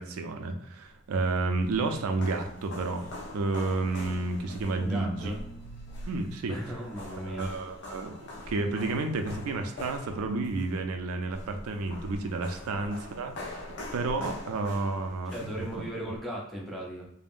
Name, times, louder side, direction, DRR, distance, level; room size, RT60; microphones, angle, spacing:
voice 1, 0.0-5.3 6.1-6.6 7.2-13.7 13.9-15.7, right 3 dB, 75° right, 6 dB, 0.4 m, -31 dB
sound 1, 1.2-16.2, left 1 dB, 50° left, 0.6 m, -44 dB
sound 2, 3.6-8.8, right 4 dB, 30° left, 1.3 m, -51 dB
voice 2, 4.7-5.4 6.5-7.5 15.3-17.1, equal, ahead, -3 dB, 0.5 m, -37 dB
3.4 x 2.0 x 2.4 m, 0.77 s
head